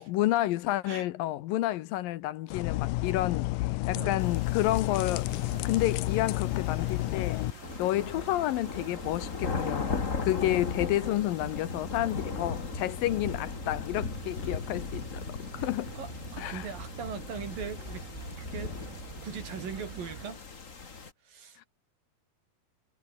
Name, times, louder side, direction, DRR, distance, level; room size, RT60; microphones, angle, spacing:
voice 1, 0.0-7.4 7.8-15.9 16.4-16.7 21.6-21.7, left 15 dB, 75° left, 2.3 m, -30 dB
sound 1, 2.5-7.5, left 18 dB, 90° left, 1.9 m, -30 dB
voice 2, 3.9-4.3 16.0-18.1 18.4-18.8 19.2-20.4 21.2-21.7, right 6 dB, 60° right, 5.5 m, -40 dB
sound 2, 4.2-21.1, left 4 dB, 30° left, 1.4 m, -38 dB
sound 3, 5.3-20.3, right 14 dB, 80° right, 3.4 m, -47 dB
omnidirectional pair, 4.6 m